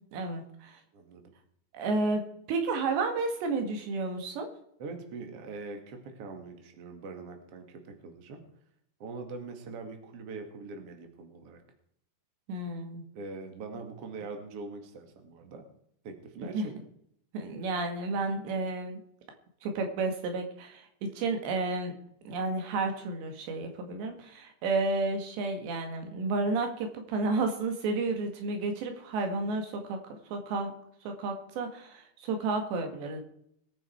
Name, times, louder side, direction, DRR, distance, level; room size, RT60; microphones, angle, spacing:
voice 1, 0.1-0.7 1.7-2.2 2.5-4.5 12.5-13.0 16.5-16.7 17.3-19.0 19.6-21.9 22.3-30.0 30.3-30.7 31.1-33.2, right 3 dB, 85° right, 5 dB, 4.2 m, -31 dB
voice 2, 0.9-1.3 4.8-8.4 9.0-11.6 13.1-15.6 16.0-16.7, right 4 dB, 40° right, 5 dB, 2.5 m, -42 dB
21.5 x 9.2 x 4.6 m, 0.72 s
omnidirectional pair, 4.9 m